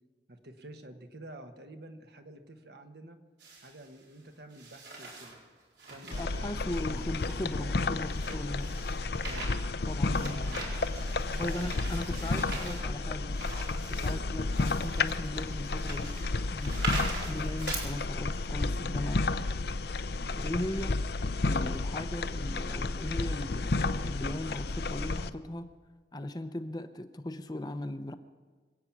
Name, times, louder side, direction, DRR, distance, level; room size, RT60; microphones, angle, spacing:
voice 1, 0.3-3.2 3.6-5.4 5.9-6.5 6.8-7.0 7.5-7.7 9.2-9.5 10.1-10.8 11.2-12.0 12.4-13.1 14.0-14.2 16.9-17.2, right 1 dB, 65° right, 6 dB, 1.3 m, -49 dB
sound 1, 3.4-4.0 4.5-5.4 5.8-17.8, right 3 dB, 80° right, 4.5 m, -42 dB
sound 2, 6.1-25.3, left 3 dB, 60° left, 0.6 m, -32 dB
voice 2, 6.2-8.8 9.9-10.6 11.4-13.4 13.9-16.1 16.5-16.7 17.3-19.2 20.4-21.0 21.5-25.7 26.1-28.1, left 1 dB, 20° left, 9 dB, 0.6 m, -38 dB
26.0 x 8.7 x 6.1 m, 1.4 s
head